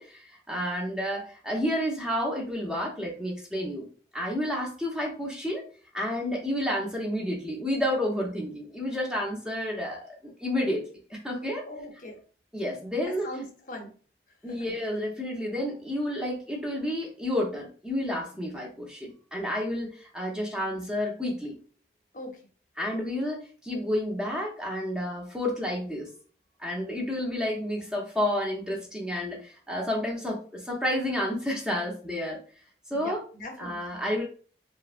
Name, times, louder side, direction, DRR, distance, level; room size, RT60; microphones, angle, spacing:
voice 1, 0.0-3.9 4.1-5.6 5.9-10.8 11.1-11.6 12.5-13.3 14.4-21.5 22.8-26.1 26.6-32.4 32.9-33.2 33.6-34.2, left 1 dB, 5° right, -2 dB, 0.6 m, -30 dB
voice 2, 11.7-12.2 13.0-13.9 22.1-22.3 32.9-34.0, left 1 dB, 45° left, 2 dB, 0.7 m, -40 dB
3.2 x 2.0 x 2.5 m, 0.40 s
head